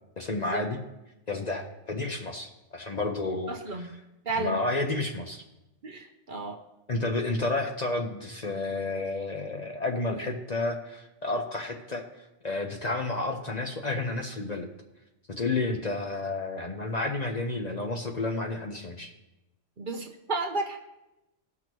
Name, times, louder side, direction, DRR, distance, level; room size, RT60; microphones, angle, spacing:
voice 1, 0.2-0.8 1.3-3.8 4.4-5.4 6.9-12.0 12.4-14.7 15.3-19.1, left 2 dB, 40° left, 2 dB, 0.8 m, -31 dB
voice 2, 3.5-3.9 4.2-4.6 5.8-6.6 19.8-20.8, right 3 dB, 45° right, 2 dB, 0.9 m, -32 dB
18.0 x 6.0 x 3.0 m, 0.94 s
omnidirectional pair, 1.2 m